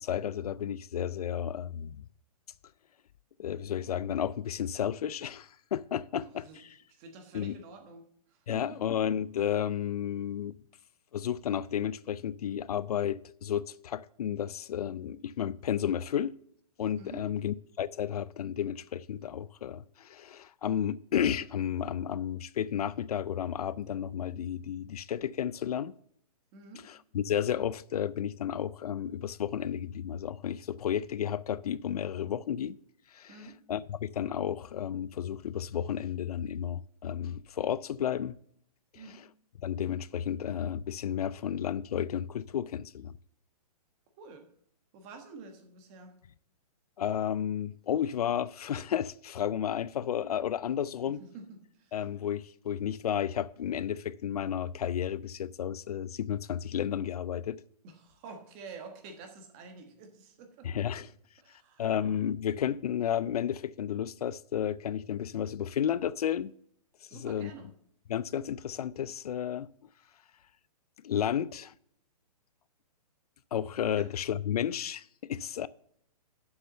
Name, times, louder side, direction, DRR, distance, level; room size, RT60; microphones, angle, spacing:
voice 1, 0.0-2.0 3.4-6.4 7.3-7.6 8.5-10.5 11.1-16.4 16.8-25.9 27.1-32.8 33.1-33.3 33.7-38.4 39.6-43.1 47.0-51.2 51.9-57.6 60.6-61.1 61.8-66.5 67.1-67.5 68.1-69.7 71.0-71.7 73.5-75.7, left 9 dB, 70° left, 0.4 m, -32 dB
voice 2, 6.1-8.8 17.0-17.3 26.5-26.8 33.3-33.6 38.9-39.2 44.2-44.5 44.9-46.2 51.0-52.0 57.8-61.1 61.4-61.9 67.1-67.7 73.9-74.1 74.5-74.6, right 4 dB, 20° right, 1.2 m, -49 dB
7.2 x 6.6 x 6.4 m
hypercardioid pair, 170°, 20 cm